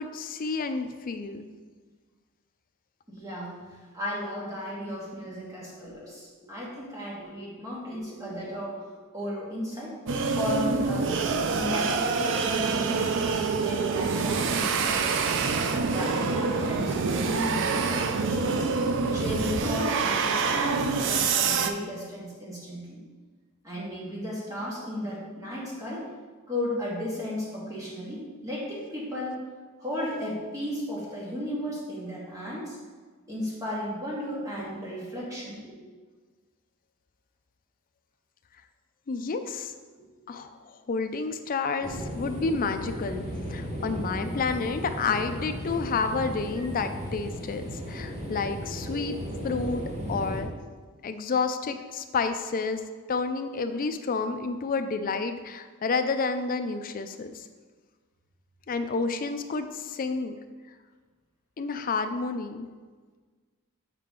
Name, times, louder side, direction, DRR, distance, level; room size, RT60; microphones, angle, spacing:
voice 1, 0.0-1.5 39.1-39.7 40.3-43.2 43.5-49.2 49.4-49.8 50.1-50.5 51.0-52.8 53.1-57.5 58.7-60.4 61.6-62.7, left 4 dB, 40° left, 8 dB, 0.4 m, -30 dB
voice 2, 3.1-3.5 3.8-10.0 10.3-13.1 13.5-15.4 15.9-18.7 19.1-23.0 23.6-26.1 26.5-29.4 29.8-32.8 33.3-35.8, left 1 dB, 15° right, -6 dB, 1.8 m, -35 dB
sound 1, 10.1-21.7, right 4 dB, 55° right, 0.4 m, -26 dB
sound 2, 41.8-50.4, equal, 30° right, 1.5 m, -35 dB
7.4 x 4.7 x 3.8 m, 1.4 s
head